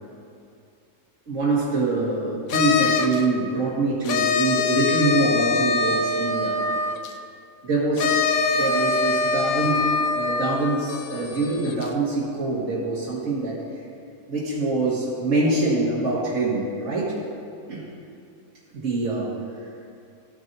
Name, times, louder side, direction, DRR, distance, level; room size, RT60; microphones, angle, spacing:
voice 1, 1.3-6.6 7.6-8.2 8.5-9.8 10.1-13.6 14.3-17.1 17.7-17.9 18.7-19.3, right 2 dB, 55° right, -9 dB, 2.1 m, -24 dB
sound 1, 2.5-3.2 4.0-7.1 8.0-11.9, left 4 dB, 70° left, 1.1 m, -24 dB
14.5 x 9.4 x 2.7 m, 2.4 s
omnidirectional pair, 1.6 m